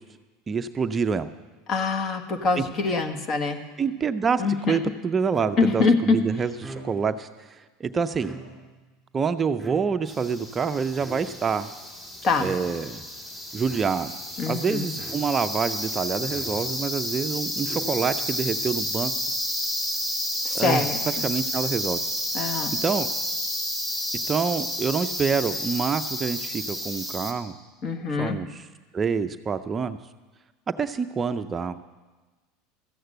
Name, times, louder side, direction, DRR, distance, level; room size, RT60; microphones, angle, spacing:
voice 1, 0.5-1.3 2.6-2.7 3.8-8.4 9.1-11.7 12.4-13.0 13.5-14.1 14.5-19.1 20.5-20.9 21.2-22.0 22.8-23.1 24.3-27.5 28.2-28.7 28.9-30.0 30.8-31.9, right 5 dB, 25° right, 9 dB, 0.5 m, -27 dB
voice 2, 1.7-3.6 4.4-4.8 5.6-6.2 12.2-12.5 14.4-14.9 20.4-21.2 22.3-22.7 27.8-28.4, left 4 dB, 40° left, 7 dB, 1.4 m, -24 dB
sound 1, 5.3-5.9 6.5-7.2 8.0-8.8 9.6-10.3 11.0-11.6 12.3-12.9 13.6-14.2 15.0-15.6 16.3-17.0 17.6-18.3, right 2 dB, 5° right, 2.9 m, -42 dB
sound 2, 10.1-27.3, equal, 20° left, 2.0 m, -31 dB
14.5 x 7.9 x 7.9 m, 1.3 s
supercardioid pair, 105°, 0 cm